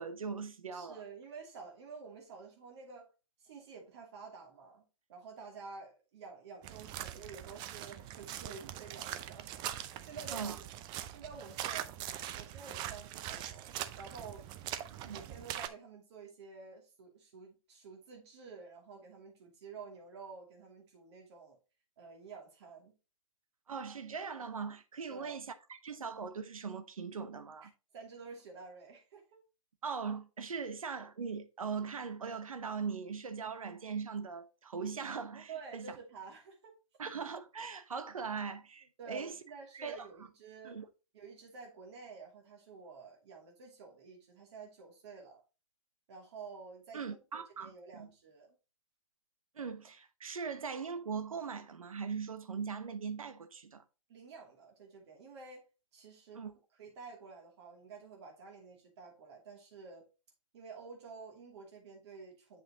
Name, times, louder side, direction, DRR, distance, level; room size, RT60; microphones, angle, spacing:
voice 1, 0.0-1.0 10.3-10.6 14.9-15.2 23.7-27.7 29.8-35.9 37.0-39.4 39.7-40.1 40.6-40.8 46.9-48.1 49.5-53.8 56.3-56.5, right 5 dB, 80° right, 1.1 m, -40 dB
voice 2, 0.7-3.1 3.4-10.6 11.1-11.9 12.3-14.5 15.1-21.6 22.0-22.9 25.1-25.4 27.6-29.4 35.5-36.8 39.0-40.8 41.1-45.4 46.1-48.5 54.1-55.7 55.9-60.1 60.5-62.6, right 5 dB, 50° right, 2.7 m, -50 dB
sound 1, 6.6-15.7, right 12 dB, 25° right, 0.6 m, -42 dB
7.8 x 6.0 x 2.8 m
hypercardioid pair, 125°, 17 cm